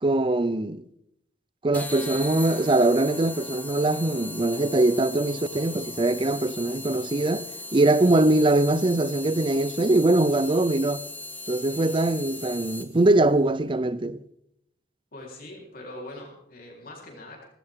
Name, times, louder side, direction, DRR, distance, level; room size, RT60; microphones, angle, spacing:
voice 1, 0.0-0.8 1.6-7.5 7.7-11.0 11.5-14.2, right 2 dB, 30° right, 0.6 m, -22 dB
sound 1, 1.7-13.1, left 2 dB, 10° left, 1.2 m, -38 dB
voice 2, 15.1-17.4, left 1 dB, 55° left, 4.0 m, -42 dB
17.5 x 16.0 x 3.7 m
head